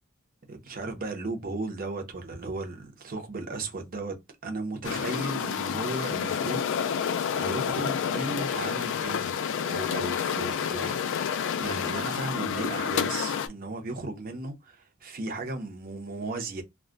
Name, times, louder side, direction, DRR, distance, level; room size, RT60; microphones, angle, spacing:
voice 1, 0.5-4.2 4.4-6.6 7.3-9.4 9.6-16.6, right 2 dB, 40° right, 0.7 m, -35 dB
sound 1, 4.8-13.5, left 7 dB, 60° left, 0.3 m, -29 dB
2.2 x 2.1 x 3.7 m
head